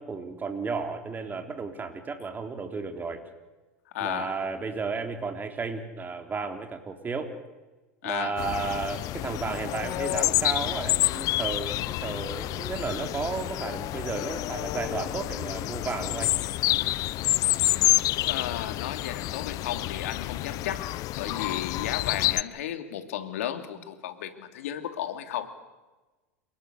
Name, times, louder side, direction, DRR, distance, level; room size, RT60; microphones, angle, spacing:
voice 1, 0.0-3.2 4.0-7.3 8.0-16.3 21.3-21.5, right 4 dB, 25° right, 5 dB, 3.7 m, -33 dB
voice 2, 3.9-4.3 8.0-8.3 18.3-20.9 21.2-25.5, left 11 dB, 70° left, 8 dB, 2.8 m, -34 dB
sound 1, 8.4-22.4, left 17 dB, 50° left, 0.8 m, -28 dB
29.0 x 19.5 x 8.3 m, 1.2 s
hypercardioid pair, 85°, 8 cm